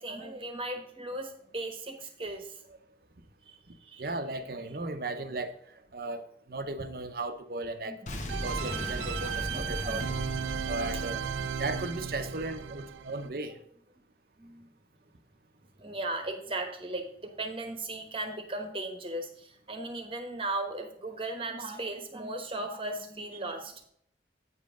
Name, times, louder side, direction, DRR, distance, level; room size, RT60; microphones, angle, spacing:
voice 1, 0.0-2.6 3.5-4.1 7.9-8.9 9.3-10.3 10.6-11.5 13.5-13.6 14.4-14.7 15.8-23.9, right 2 dB, 30° right, 5 dB, 1.1 m, -38 dB
voice 2, 4.0-5.5 5.9-8.0 8.4-10.1 10.7-11.2 11.6-13.6, right 2 dB, 55° right, 9 dB, 0.7 m, -36 dB
Boom, 8.1-13.0, left 1 dB, 40° left, 1.0 m, -38 dB
sound 1, 8.3-13.3, right 9 dB, 85° right, 0.4 m, -36 dB
8.7 x 5.3 x 5.0 m, 0.67 s
head